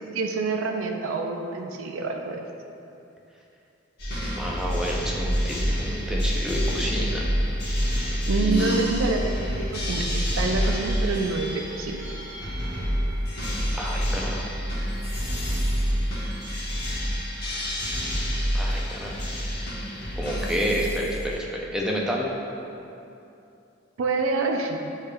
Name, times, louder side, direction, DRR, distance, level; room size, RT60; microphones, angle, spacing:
voice 1, 0.1-2.4 8.3-9.4 9.7-12.1 24.0-24.8, right 3 dB, 90° right, 4 dB, 0.4 m, -27 dB
sound 1, 4.0-21.3, equal, 55° left, 1.0 m, -27 dB
voice 2, 4.2-7.3 8.0-8.9 13.7-14.5 18.5-19.2 20.1-22.3, equal, 5° right, -3 dB, 0.4 m, -29 dB
6.4 x 3.2 x 2.2 m, 2.7 s
head